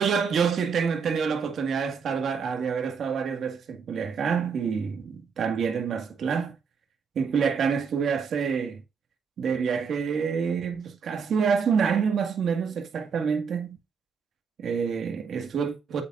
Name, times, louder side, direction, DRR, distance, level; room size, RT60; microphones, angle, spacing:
voice 1, 0.0-6.5 7.2-8.8 9.4-13.8 14.6-16.0, right 6 dB, 60° right, 1.9 m, -27 dB
9.0 x 6.9 x 2.6 m
cardioid pair, 90°, 0 cm